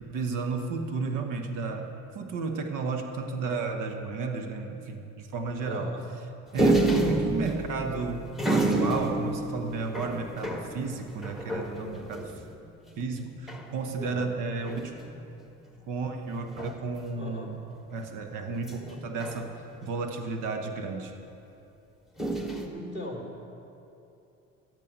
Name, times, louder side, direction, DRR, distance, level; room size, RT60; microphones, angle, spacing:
voice 1, 0.1-5.9 6.5-12.3 13.0-15.0 15.9-17.6 17.9-19.5 19.8-21.1, right 4 dB, 70° right, 5 dB, 1.3 m, -33 dB
voice 2, 5.6-6.0 14.0-14.3 17.1-17.5 22.7-23.4, left 1 dB, 25° right, 0 dB, 2.9 m, -38 dB
sound 1, 6.6-12.5 12.9-13.0 13.2-13.7 14.6-15.2 16.5-17.0 18.6-20.0 22.2-22.7, right 2 dB, ahead, 1.5 m, -29 dB
12.5 x 8.5 x 5.5 m, 2.8 s
supercardioid pair, 70°, 32 cm